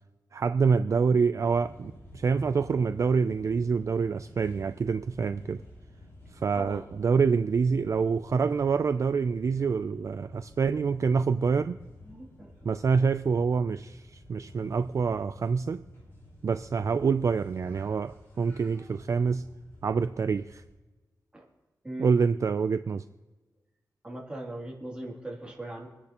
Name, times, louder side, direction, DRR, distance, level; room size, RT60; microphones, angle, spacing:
voice 1, 0.3-5.6 6.3-11.8 12.6-15.8 16.4-19.4 19.8-20.6 22.0-23.0, right 5 dB, 45° right, 10 dB, 0.3 m, -26 dB
sound 1, 1.3-20.7, left 1 dB, 35° left, 5.6 m, -51 dB
voice 2, 12.0-12.7 21.3-21.5 21.8-22.1 24.0-25.9, right 1 dB, 15° right, -3 dB, 2.7 m, -39 dB
26.0 x 10.0 x 2.9 m, 1.2 s
wide cardioid pair, 155°, 7 cm